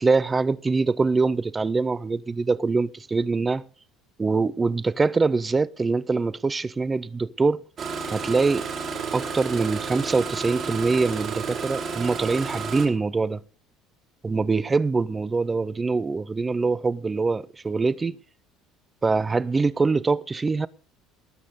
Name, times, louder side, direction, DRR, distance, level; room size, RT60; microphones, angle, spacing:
voice 1, 0.0-3.7 4.2-7.6 8.1-8.7 9.1-13.4 14.2-18.2 19.0-20.7, right 4 dB, 15° right, 0.5 m, -24 dB
Engine starting, 7.8-12.9, right 5 dB, 35° right, 2.6 m, -31 dB
19.0 x 6.4 x 5.2 m
cardioid pair, 150°, 0 cm